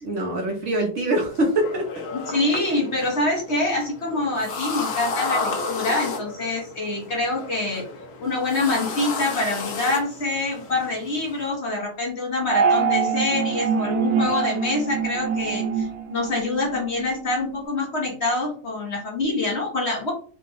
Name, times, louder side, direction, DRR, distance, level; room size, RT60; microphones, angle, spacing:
voice 1, 0.0-2.0, right 1 dB, 55° right, 1 dB, 0.9 m, -24 dB
sound 1, 1.3-11.5, left 3 dB, 70° left, 1.2 m, -33 dB
voice 2, 2.3-7.9 8.2-20.1, left 2 dB, 50° left, -1 dB, 1.2 m, -25 dB
sound 2, 12.4-17.1, right 6 dB, 80° right, 1.1 m, -24 dB
3.7 x 2.2 x 3.8 m, 0.42 s
omnidirectional pair, 1.7 m